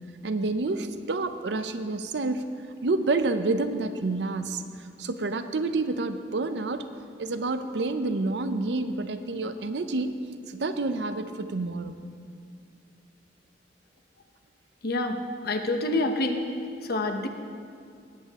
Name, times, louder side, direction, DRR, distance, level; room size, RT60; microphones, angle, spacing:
voice 1, 0.2-2.5 2.8-4.6 5.0-6.8 7.2-10.2 10.5-11.9, right 3 dB, 75° right, 10 dB, 0.6 m, -28 dB
voice 2, 14.8-15.2 15.4-16.5 16.9-17.3, left 2 dB, 60° left, 5 dB, 0.9 m, -26 dB
17.5 x 8.4 x 3.6 m, 2.4 s
head